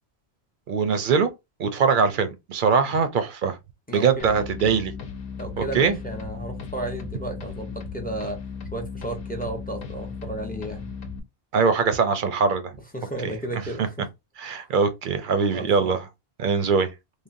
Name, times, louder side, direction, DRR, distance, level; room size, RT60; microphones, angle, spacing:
voice 1, 0.7-1.3 1.6-3.6 3.9-4.9 5.6-6.0 11.5-12.7 13.2-13.9 14.4-16.0 16.4-16.9, right 5 dB, 60° right, 0.6 m, -22 dB
voice 2, 3.9-4.3 5.4-8.4 8.7-10.9 12.9-14.0 15.5-16.0, right 2 dB, 10° left, 0.5 m, -33 dB
sound 1, 4.2-11.2, left 5 dB, 65° left, 0.8 m, -36 dB
3.2 x 2.1 x 2.5 m
omnidirectional pair, 1.1 m